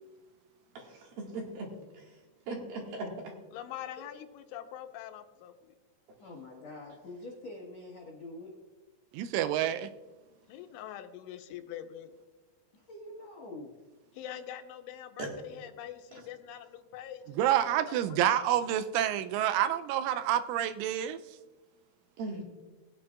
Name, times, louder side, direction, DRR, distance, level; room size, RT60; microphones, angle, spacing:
voice 1, 0.7-2.1 2.5-3.3 15.2-15.3 22.2-22.4, right 2 dB, 60° right, -1 dB, 3.2 m, -39 dB
voice 2, 3.5-5.7 10.5-12.1 14.1-18.2, left 11 dB, 85° left, 7 dB, 3.1 m, -44 dB
voice 3, 6.2-8.5 12.7-13.7, left 2 dB, 65° left, -3 dB, 1.6 m, -45 dB
voice 4, 9.1-9.9 17.4-21.2, right 11 dB, 85° right, 11 dB, 3.0 m, -28 dB
20.5 x 9.8 x 2.4 m, 1.2 s
omnidirectional pair, 5.6 m